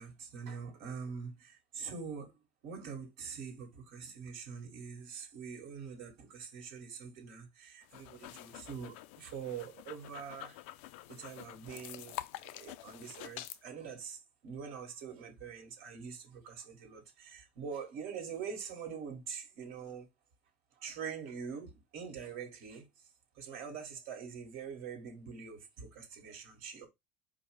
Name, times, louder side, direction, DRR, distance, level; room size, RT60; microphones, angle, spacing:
voice 1, 0.0-2.3 2.6-10.6 11.1-20.1 20.8-23.1 23.3-26.9, right 6 dB, 75° right, 1.6 m, -44 dB
sound 1, 7.8-13.6, left 16 dB, 80° left, 0.3 m, -47 dB
4.8 x 2.1 x 4.7 m
supercardioid pair, 115°, 6 cm